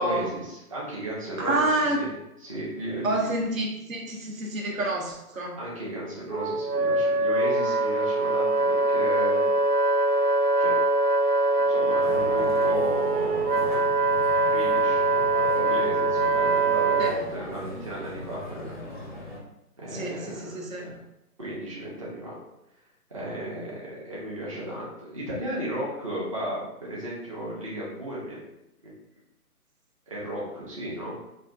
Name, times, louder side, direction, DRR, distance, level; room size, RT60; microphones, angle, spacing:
voice 1, 0.0-2.1 2.4-3.4 4.7-4.9 5.6-9.5 10.6-10.8 11.7-13.8 14.5-18.7 19.8-20.9 21.4-22.4 23.1-28.4 28.8-28.9 30.1-31.2, right 1 dB, 25° right, -6 dB, 0.6 m, -35 dB
voice 2, 1.4-2.0 3.0-5.6 17.0-17.2 19.9-21.0, right 2 dB, 60° right, 0 dB, 1.0 m, -28 dB
Wind instrument woodwind instrument, 6.3-17.2, right 2 dB, 80° right, 0.6 m, -23 dB
sound 1, 12.0-19.4, left 1 dB, 35° left, 0.6 m, -39 dB
5.0 x 2.6 x 2.4 m, 0.87 s
figure-of-eight pair, 150°, 46 cm